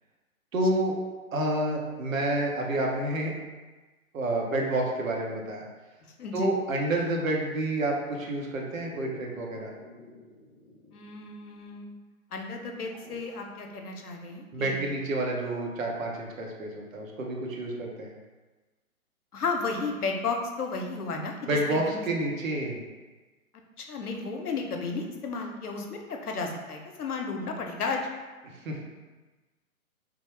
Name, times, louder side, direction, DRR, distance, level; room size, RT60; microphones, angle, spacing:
voice 1, 0.5-1.0 1.3-3.3 4.1-5.6 6.3-9.7 14.5-18.1 21.5-22.8 28.6-28.8, right 1 dB, 65° right, 0 dB, 0.8 m, -29 dB
voice 2, 6.2-6.5 10.9-11.9 12.3-14.9 19.3-21.3 21.7-22.0 23.8-28.1, left 4 dB, 85° left, 3 dB, 0.7 m, -33 dB
Dog, 8.6-11.3 11.6-11.7 12.8-13.4 15.5-15.6, left 1 dB, 15° left, 0.5 m, -51 dB
3.5 x 2.0 x 3.1 m, 1.2 s
hypercardioid pair, 135°, 44 cm